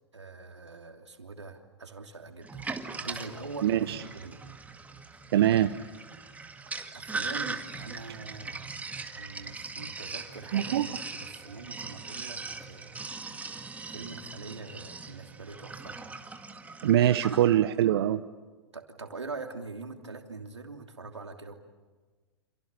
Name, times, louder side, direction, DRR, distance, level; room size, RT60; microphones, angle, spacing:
voice 1, 0.1-2.6 3.0-4.4 6.9-8.8 9.1-12.9 13.9-16.0 16.9-17.5 18.7-21.5, right 3 dB, 90° right, 4 dB, 3.0 m, -43 dB
Sink (filling or washing), 2.4-17.5, right 4 dB, 10° right, 2.0 m, -40 dB
voice 2, 3.6-4.0 5.3-5.8 10.5-10.9 16.8-18.2, right 12 dB, 60° right, 10 dB, 1.0 m, -23 dB
29.5 x 27.5 x 6.9 m, 1.3 s
hypercardioid pair, 105°, 14 cm